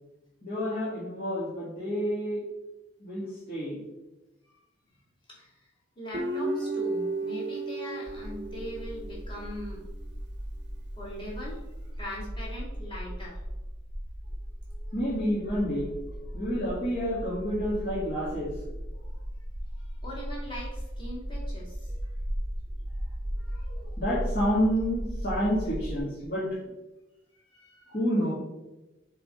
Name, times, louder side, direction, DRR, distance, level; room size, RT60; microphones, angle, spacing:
voice 1, 0.4-2.4 3.0-3.8 14.8-15.9 16.3-18.5 23.4-26.5 27.9-28.3, equal, 50° left, -9 dB, 2.0 m, -29 dB
voice 2, 6.0-9.9 11.0-11.6 11.9-13.3 18.9-19.0 19.7-21.9 27.3-28.0, left 1 dB, 25° left, -6 dB, 2.3 m, -41 dB
Guitar, 6.1-9.4, right 2 dB, 60° right, 0.7 m, -33 dB
sound 1, 8.1-26.0, equal, 15° right, 0.9 m, -37 dB
7.4 x 3.6 x 4.3 m, 1.0 s
head